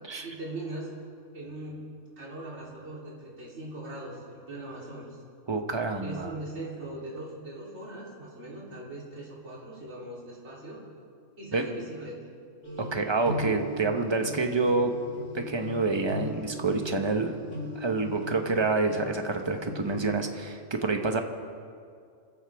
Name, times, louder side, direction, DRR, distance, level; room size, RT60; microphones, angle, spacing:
voice 1, 0.2-0.9 1.3-1.9 2.2-5.2 6.0-10.8 11.4-12.2, right 1 dB, 55° right, -7 dB, 3.9 m, -40 dB
voice 2, 5.5-6.3 11.5-11.6 12.9-14.9 15.3-17.3 17.7-21.2, right 3 dB, 20° right, 5 dB, 1.1 m, -27 dB
sound 1, 12.6-20.0, equal, 90° left, 5.2 m, -38 dB
27.0 x 14.5 x 3.6 m, 2.3 s
omnidirectional pair, 1.4 m